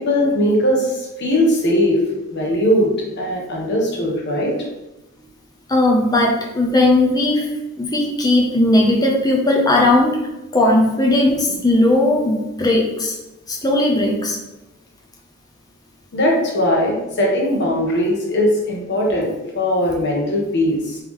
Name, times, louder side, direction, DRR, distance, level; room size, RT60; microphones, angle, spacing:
voice 1, 0.0-2.0 2.3-4.5 16.1-19.3 19.5-21.0, equal, 50° left, -2 dB, 1.1 m, -19 dB
voice 2, 5.7-7.5 7.8-10.2 10.5-13.2 13.5-14.4, left 1 dB, 20° left, 0 dB, 0.6 m, -17 dB
3.5 x 3.1 x 3.6 m, 0.97 s
head